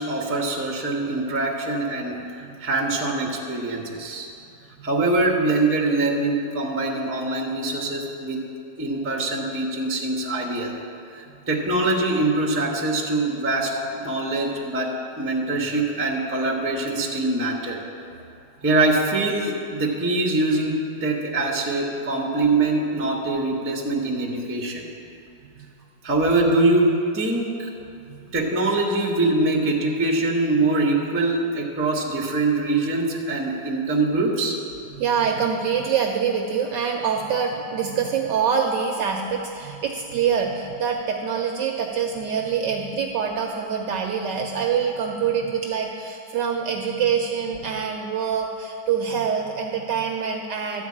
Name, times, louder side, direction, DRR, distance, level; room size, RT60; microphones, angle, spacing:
voice 1, 0.0-4.3 4.8-8.4 8.8-10.7 11.1-17.8 18.6-24.9 26.0-27.7 28.3-34.6, right 2 dB, 15° right, -1 dB, 0.5 m, -23 dB
voice 2, 34.9-50.8, right 7 dB, 70° right, 2 dB, 1.1 m, -25 dB
12.0 x 4.7 x 8.4 m, 2.7 s
omnidirectional pair, 2.4 m